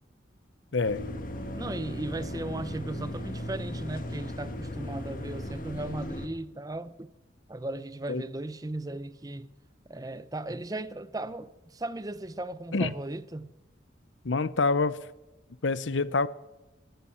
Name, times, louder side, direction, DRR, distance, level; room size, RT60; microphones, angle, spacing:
sound 1, 0.8-6.3, left 1 dB, 45° left, 1.7 m, -37 dB
voice 1, 1.6-7.1 7.5-9.5 9.9-13.5, right 2 dB, 20° right, 0.6 m, -36 dB
voice 2, 14.2-15.0 15.6-16.3, left 3 dB, 75° left, 0.8 m, -26 dB
19.5 x 14.5 x 4.5 m
head